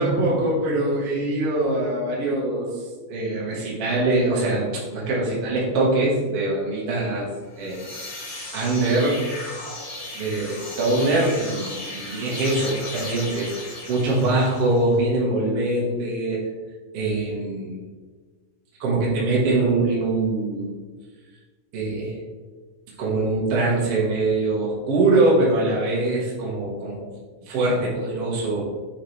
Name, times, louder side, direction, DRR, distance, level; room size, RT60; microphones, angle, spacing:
voice 1, 0.0-2.7 3.1-7.3 7.6-7.8 8.5-9.2 10.2-13.5 13.9-16.5 16.9-17.8 18.8-20.6 21.7-22.2 23.0-27.1 27.5-28.6, right 2 dB, 50° right, -6 dB, 2.0 m, -23 dB
sound 1, 7.4-14.9, left 2 dB, 55° left, 3.8 m, -36 dB
9.1 x 4.9 x 3.3 m, 1.4 s
omnidirectional pair, 4.3 m